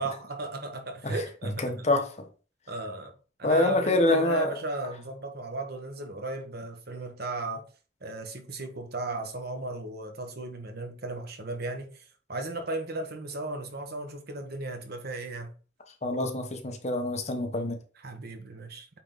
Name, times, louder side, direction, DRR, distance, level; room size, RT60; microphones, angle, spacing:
voice 1, 0.0-1.9 2.7-3.1 3.4-7.6 8.0-15.5 18.0-18.9, right 2 dB, 55° right, 1.4 m, -36 dB
voice 2, 1.6-2.0 3.4-4.5 16.0-17.8, left 2 dB, 35° left, 1.1 m, -25 dB
8.7 x 3.8 x 3.9 m
head